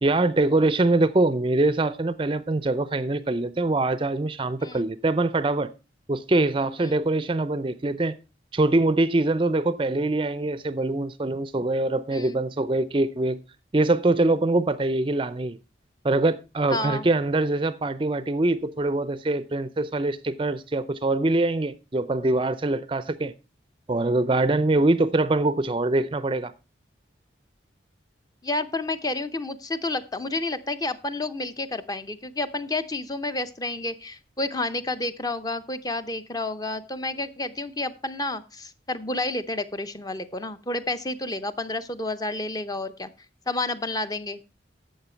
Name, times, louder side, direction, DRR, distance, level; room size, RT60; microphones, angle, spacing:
voice 1, 0.0-5.7 6.1-8.2 8.5-13.4 13.7-15.6 16.0-23.3 23.9-26.5, right 2 dB, 25° right, 0.4 m, -23 dB
voice 2, 16.7-17.1 28.4-43.1 43.5-44.4, left 2 dB, 20° left, 0.6 m, -30 dB
12.0 x 7.6 x 4.4 m
head